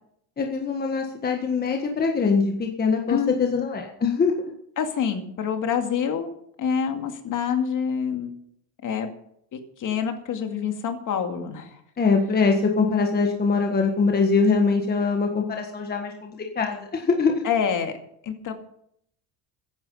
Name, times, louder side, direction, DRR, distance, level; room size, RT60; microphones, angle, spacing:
voice 1, 0.4-4.3 12.0-17.4, left 4 dB, 20° left, 2 dB, 1.5 m, -23 dB
voice 2, 4.8-6.3 6.6-8.3 8.8-9.1 9.5-11.8 17.4-17.9 18.2-18.5, left 7 dB, 40° left, 6 dB, 2.3 m, -26 dB
15.0 x 11.0 x 5.5 m, 0.69 s
cardioid pair, 150°, 47 cm